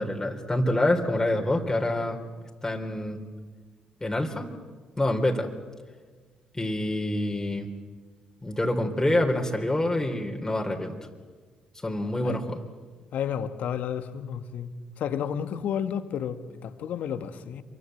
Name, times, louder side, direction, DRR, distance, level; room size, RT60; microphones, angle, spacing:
voice 1, 0.0-2.2 2.6-3.2 4.0-4.5 5.0-5.5 6.5-7.7 8.4-11.0 11.7-12.6, left 1 dB, 15° left, 3.7 m, -26 dB
voice 2, 13.1-14.7 15.0-17.6, left 8 dB, 60° left, 1.7 m, -31 dB
27.5 x 23.5 x 8.0 m
hypercardioid pair, 45°, 3 cm